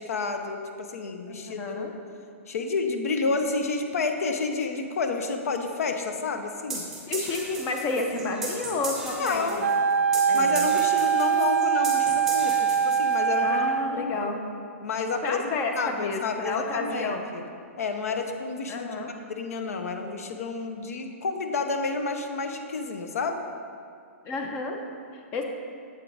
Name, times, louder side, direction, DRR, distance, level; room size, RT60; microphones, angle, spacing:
voice 1, 0.0-1.9 2.5-6.8 9.2-9.7 10.3-13.6 13.9-14.3 14.8-17.4 17.8-19.0 19.2-23.4, left 4 dB, 85° left, 6 dB, 0.6 m, -30 dB
voice 2, 1.3-1.9 7.1-9.7 10.3-10.8 13.4-14.4 15.2-17.3 18.7-19.1 24.3-24.8 25.1-25.4, left 3 dB, 25° left, 3 dB, 0.5 m, -31 dB
sound 1, 6.7-13.4, right 3 dB, 5° right, 1.1 m, -36 dB
Wind instrument woodwind instrument, 9.6-14.0, right 7 dB, 85° right, 0.4 m, -23 dB
7.4 x 4.5 x 3.9 m, 2.3 s
hypercardioid pair, 160°, 8 cm